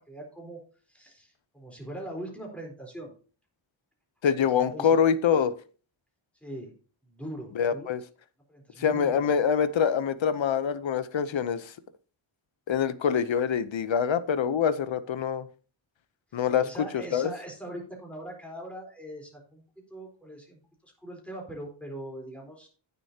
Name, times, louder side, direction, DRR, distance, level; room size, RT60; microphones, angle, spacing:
voice 1, 0.1-0.6 0.9-3.1 4.6-5.0 6.4-6.7 7.0-7.9 8.5-9.3 16.6-19.6 19.9-22.7, right 1 dB, 5° left, -1 dB, 4.0 m, -41 dB
voice 2, 4.2-5.6 7.5-8.0 8.8-11.7 12.7-15.5 16.3-16.7 16.9-17.3, left 7 dB, 70° left, 14 dB, 0.8 m, -25 dB
16.0 x 6.9 x 2.8 m, 0.39 s
wide cardioid pair, 135°, 48 cm